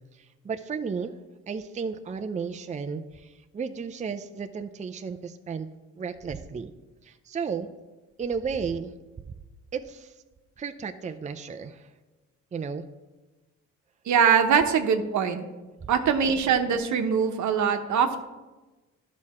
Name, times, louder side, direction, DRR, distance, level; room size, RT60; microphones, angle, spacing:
voice 1, 0.1-1.2 1.5-5.7 6.0-6.7 7.0-7.7 8.2-8.9 9.7-10.2 10.6-11.9 12.5-12.8, right 5 dB, 25° right, 7 dB, 0.5 m, -33 dB
voice 2, 14.1-15.4 15.9-18.2, right 7 dB, 70° right, 6 dB, 1.0 m, -22 dB
11.5 x 6.2 x 4.3 m, 1.2 s
cardioid pair, 90°, 30 cm